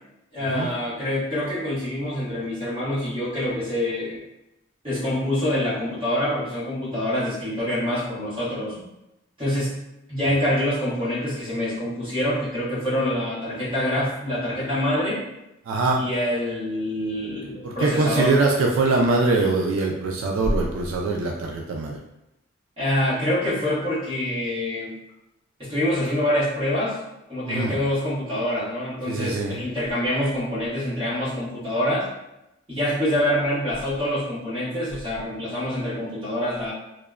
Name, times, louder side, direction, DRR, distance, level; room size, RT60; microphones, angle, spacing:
voice 1, 0.3-4.2 4.8-8.8 9.4-9.8 10.1-15.3 15.9-18.4 22.8-24.9 25.6-27.0 27.3-32.1 32.7-36.7, left 1 dB, 25° right, -10 dB, 1.3 m, -26 dB
voice 2, 15.7-16.0 17.6-22.0 27.5-27.7 29.1-29.6, right 3 dB, 85° right, 1 dB, 0.3 m, -22 dB
3.1 x 2.1 x 2.3 m, 0.89 s
head